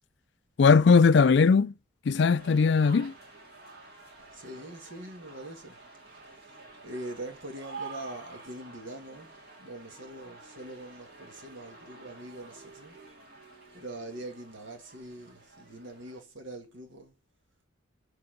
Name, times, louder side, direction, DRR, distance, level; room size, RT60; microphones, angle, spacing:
voice 1, 0.6-1.7 2.1-3.1, left 5 dB, 60° left, 0.4 m, -19 dB
sound 1, 2.4-16.2, right 3 dB, 50° right, 2.3 m, -49 dB
voice 2, 4.2-5.8 6.8-13.0 13.7-17.1, right 1 dB, 75° right, 2.1 m, -43 dB
7.0 x 4.7 x 6.6 m
head